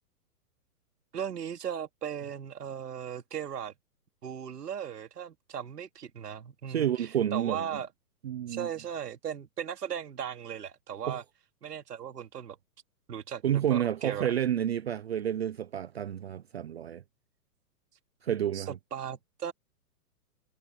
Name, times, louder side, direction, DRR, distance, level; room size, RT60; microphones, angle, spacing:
voice 1, 1.1-3.7 4.2-7.9 8.5-11.2 11.6-12.6 13.1-13.4 13.7-14.3 18.5-19.5, right 8 dB, 80° right, 2.9 m, -37 dB
voice 2, 6.7-7.7 8.2-8.7 11.1-11.2 13.4-17.0 18.2-18.8, right 10 dB, 45° right, 0.7 m, -30 dB
hypercardioid pair, 175°, 46 cm